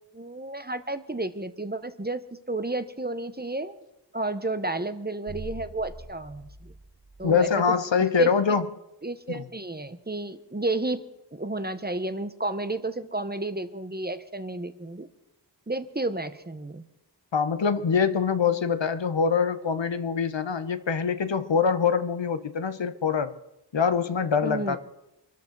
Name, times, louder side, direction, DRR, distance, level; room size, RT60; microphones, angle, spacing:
voice 1, 0.1-3.8 4.1-6.7 7.2-7.7 8.2-8.3 9.0-11.0 11.3-15.1 15.7-16.8 24.4-24.8, right 2 dB, 20° right, 11 dB, 1.0 m, -32 dB
sound 1, 5.3-7.7, right 1 dB, 75° right, 2.3 m, -43 dB
voice 2, 7.2-8.7 9.3-9.4 17.3-23.4 23.7-24.8, left 6 dB, 80° left, 12 dB, 0.9 m, -24 dB
24.5 x 13.0 x 4.0 m, 0.91 s
wide cardioid pair, 55°, 43 cm